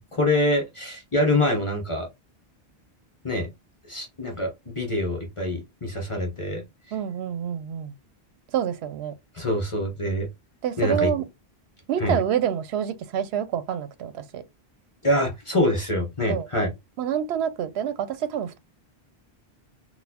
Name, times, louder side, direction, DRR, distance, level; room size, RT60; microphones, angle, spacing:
voice 1, 0.0-2.1 3.2-3.5 3.9-6.9 9.3-10.3 10.8-11.1 12.0-12.2 15.0-16.7, left 1 dB, 35° left, 0.7 m, -25 dB
voice 2, 6.9-7.9 8.5-9.1 10.6-11.3 11.9-14.4 16.3-16.5 17.0-18.6, right 9 dB, 80° right, 0.8 m, -27 dB
4.0 x 2.2 x 2.8 m
omnidirectional pair, 1.1 m